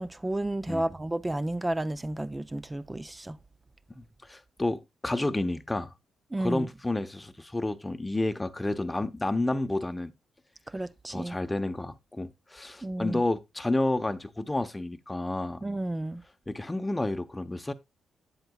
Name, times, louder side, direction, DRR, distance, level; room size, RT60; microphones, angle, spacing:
voice 1, 0.0-3.4 6.3-6.7 10.7-11.4 12.8-13.2 15.6-16.2, right 1 dB, 15° right, 0.5 m, -32 dB
voice 2, 3.9-5.9 6.4-10.1 11.1-15.6 16.5-17.7, left 2 dB, 15° left, 0.9 m, -30 dB
9.0 x 7.8 x 2.3 m
cardioid pair, 70°, 0 cm